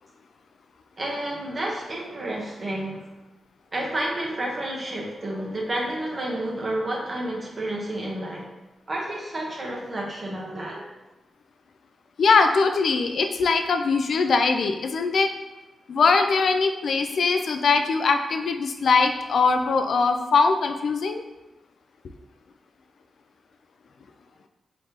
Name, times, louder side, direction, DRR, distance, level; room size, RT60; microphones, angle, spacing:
voice 1, 1.0-3.1 3.7-8.5 8.9-10.9, right 1 dB, 40° right, -3 dB, 1.0 m, -30 dB
voice 2, 12.2-15.3 15.9-21.2, left 4 dB, 70° left, 6 dB, 0.3 m, -21 dB
3.6 x 3.1 x 2.8 m, 1.0 s
cardioid pair, 70°, 0 cm